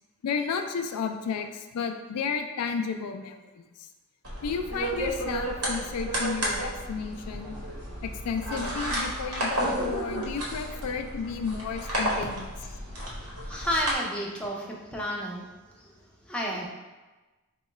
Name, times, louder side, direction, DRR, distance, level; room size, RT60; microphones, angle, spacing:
voice 1, 0.2-3.6 4.4-7.6 8.0-12.5, left 5 dB, 90° left, 6 dB, 0.3 m, -32 dB
sound 1, 4.2-13.9, right 1 dB, 85° right, 1.0 m, -32 dB
voice 2, 13.5-15.4 16.3-16.7, equal, 5° left, -3 dB, 0.5 m, -31 dB
4.6 x 2.2 x 3.0 m, 1.2 s
head